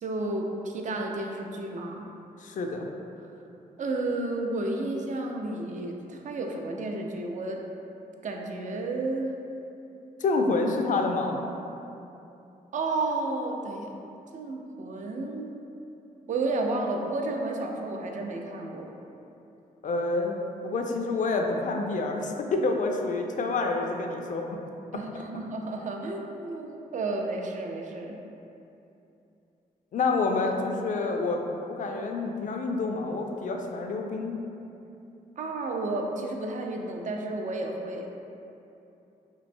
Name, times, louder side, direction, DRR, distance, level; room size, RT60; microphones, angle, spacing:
voice 1, 0.0-2.1 3.8-7.6 8.2-9.3 12.7-13.9 14.3-15.6 16.3-18.9 24.9-28.2 35.4-38.1, right 2 dB, 50° right, 2 dB, 0.4 m, -32 dB
voice 2, 2.4-2.9 10.2-11.4 19.8-24.6 29.9-31.4 31.7-34.4, left 3 dB, 55° left, 2 dB, 0.4 m, -28 dB
3.0 x 2.6 x 2.6 m, 2.8 s
cardioid pair, 70°, 16 cm